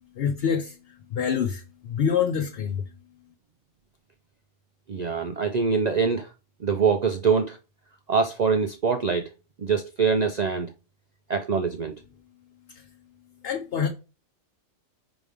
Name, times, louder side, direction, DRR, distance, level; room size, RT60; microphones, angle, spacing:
voice 1, 0.1-2.9 12.7-12.8 13.4-13.9, left 7 dB, 50° left, 0.8 m, -26 dB
voice 2, 4.9-6.3 6.6-7.6 8.1-9.3 9.6-10.7 11.3-11.9, right 5 dB, 75° right, 0.3 m, -24 dB
4.9 x 4.0 x 5.0 m
omnidirectional pair, 1.5 m